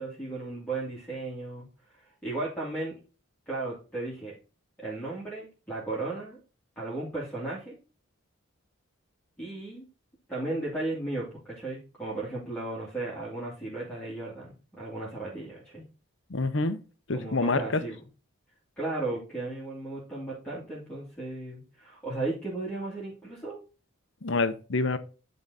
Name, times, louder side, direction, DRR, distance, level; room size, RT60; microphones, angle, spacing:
voice 1, 0.0-1.7 1.9-3.0 3.5-4.3 4.8-6.4 6.8-7.8 9.4-9.8 10.3-15.9 17.1-18.0 18.8-23.6, right 2 dB, 5° left, -8 dB, 2.4 m, -35 dB
voice 2, 16.3-16.8 17.1-17.8 24.2-25.0, left 3 dB, 55° left, 11 dB, 0.8 m, -27 dB
10.5 x 4.0 x 4.0 m, 0.34 s
head